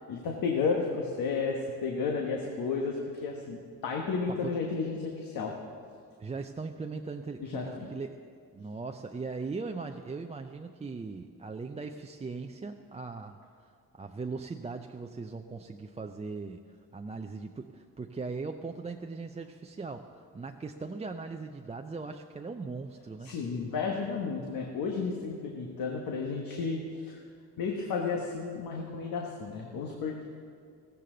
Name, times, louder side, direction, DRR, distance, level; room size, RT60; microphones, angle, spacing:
voice 1, 0.1-5.5 7.4-7.9 23.2-27.2 27.6-30.2, left 4 dB, 75° left, 0 dB, 1.4 m, -32 dB
voice 2, 6.2-8.2 8.5-13.7 14.0-23.3, right 4 dB, 20° right, 4 dB, 0.5 m, -39 dB
15.0 x 13.5 x 3.9 m, 2.2 s
cardioid pair, 75°, 35 cm